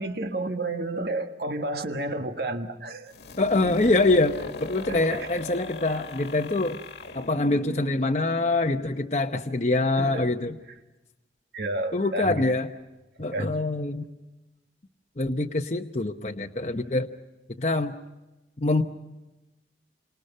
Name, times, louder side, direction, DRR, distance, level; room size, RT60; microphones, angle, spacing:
voice 1, 0.0-3.1 4.9-5.4 10.0-10.3 11.5-12.4 13.3-13.5, right 2 dB, 60° right, 6 dB, 1.6 m, -31 dB
sound 1, 3.1-8.8, left 2 dB, 75° left, 1.8 m, -39 dB
voice 2, 3.4-6.8 7.1-10.6 11.9-12.7 13.2-14.1 15.2-17.1 17.6-17.9 18.6-18.8, left 2 dB, 40° left, 2 dB, 0.9 m, -25 dB
28.5 x 26.5 x 5.5 m, 1.1 s
head